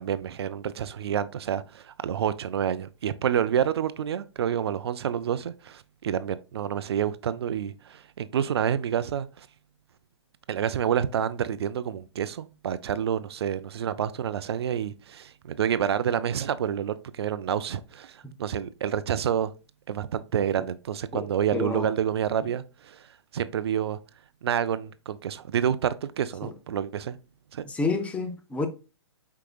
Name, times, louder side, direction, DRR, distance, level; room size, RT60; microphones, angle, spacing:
voice 1, 0.0-9.5 10.5-19.5 19.9-23.1 23.3-24.0 24.4-27.2 27.5-27.6, right 9 dB, 65° right, 0.5 m, -28 dB
voice 2, 21.1-21.9 26.4-26.5 27.6-28.7, left 3 dB, 10° left, 0.5 m, -30 dB
4.7 x 4.7 x 2.2 m
hypercardioid pair, 125°, 15 cm